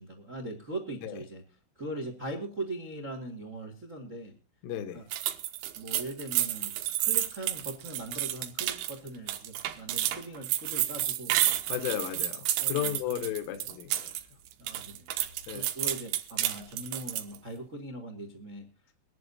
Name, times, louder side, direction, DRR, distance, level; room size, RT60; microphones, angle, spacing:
voice 1, 0.0-1.4 1.8-4.3 4.9-5.0 5.7-11.4 12.6-13.3 14.6-15.1 15.5-18.7, right 1 dB, 70° right, 4 dB, 0.7 m, -40 dB
voice 2, 4.6-5.0 11.7-14.1 15.5-15.7, left 11 dB, 85° left, 6 dB, 3.7 m, -34 dB
sound 1, 5.1-14.2 14.5-17.4, right 13 dB, 90° right, 3.6 m, -30 dB
23.0 x 11.0 x 2.7 m, 0.32 s
omnidirectional pair, 5.6 m